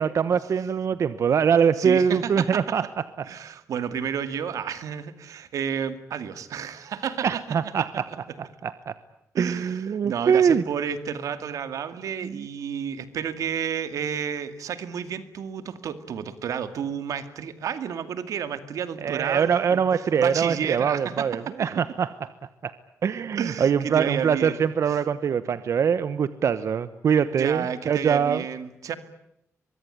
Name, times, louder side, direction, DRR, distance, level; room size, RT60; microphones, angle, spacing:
voice 1, 0.0-2.8 3.2-3.3 7.2-8.9 9.4-10.6 12.2-12.5 19.0-22.3 22.6-22.7 23.0-28.4, right 7 dB, 60° right, 13 dB, 1.1 m, -23 dB
voice 2, 1.8-2.6 3.2-7.6 9.3-19.8 20.2-21.5 23.4-24.6 27.3-29.0, right 8 dB, 90° right, 11 dB, 2.3 m, -31 dB
23.5 x 23.0 x 10.0 m, 0.79 s
wide cardioid pair, 130°, 6 cm